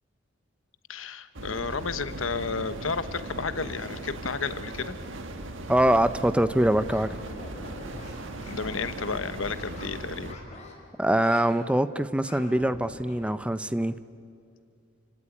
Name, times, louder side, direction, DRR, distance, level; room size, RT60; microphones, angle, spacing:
voice 1, 0.9-5.0 8.5-10.4, left 4 dB, 80° left, 12 dB, 1.1 m, -32 dB
sound 1, 1.3-10.3, right 1 dB, 65° right, 1.7 m, -38 dB
voice 2, 5.7-7.2 11.0-13.9, right 1 dB, 5° right, 14 dB, 0.5 m, -23 dB
sound 2, 6.9-9.9 10.2-10.7 11.0-11.5 12.0-13.3, left 1 dB, 35° left, 4.7 m, -45 dB
29.5 x 17.0 x 9.9 m, 2.4 s
head